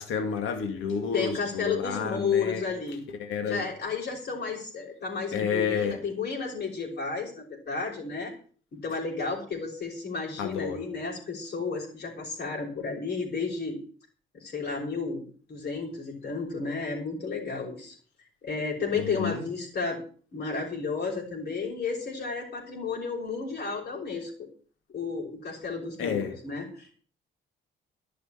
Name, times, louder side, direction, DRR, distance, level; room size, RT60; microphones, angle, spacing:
voice 1, 0.0-2.7 3.2-3.7 5.3-6.0 10.4-10.8 18.9-19.4 26.0-26.3, left 6 dB, 85° left, 2.3 m, -30 dB
voice 2, 1.1-3.0 3.4-8.3 8.7-13.8 14.3-17.9 18.4-20.0 20.3-24.3 24.9-26.9, left 4 dB, 55° left, 5.8 m, -32 dB
12.5 x 6.7 x 8.9 m
cardioid pair, 90°, 20 cm